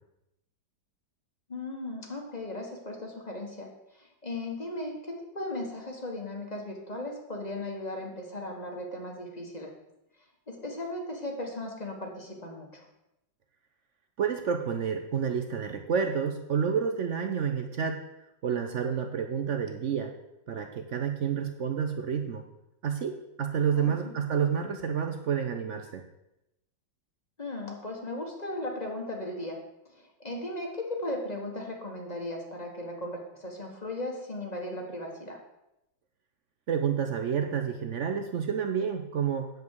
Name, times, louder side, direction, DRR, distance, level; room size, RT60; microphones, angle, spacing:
voice 1, 1.5-3.7 3.9-9.7 10.5-12.9 23.7-24.1 27.4-29.6 29.8-35.4, left 1 dB, 25° left, 0 dB, 1.4 m, -37 dB
voice 2, 14.2-18.0 18.4-20.1 20.5-22.4 22.8-26.0 36.7-39.5, right 7 dB, 70° right, 6 dB, 0.7 m, -29 dB
9.5 x 7.3 x 4.7 m, 0.87 s
omnidirectional pair, 2.1 m